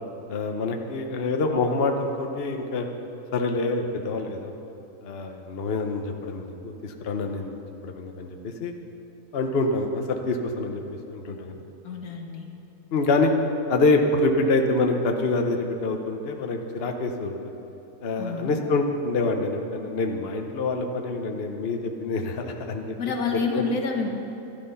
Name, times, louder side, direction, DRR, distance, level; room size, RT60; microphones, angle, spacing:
voice 1, 0.3-2.9 3.3-4.5 5.0-8.8 9.3-10.8 11.1-11.6 12.9-13.3 13.7-17.5 18.0-22.9 23.5-23.6, left 3 dB, 50° left, 4 dB, 1.0 m, -26 dB
voice 2, 11.8-12.5 18.2-18.5 23.0-24.1, left 4 dB, 85° left, 2 dB, 1.8 m, -28 dB
12.5 x 12.0 x 5.6 m, 2.9 s
omnidirectional pair, 1.5 m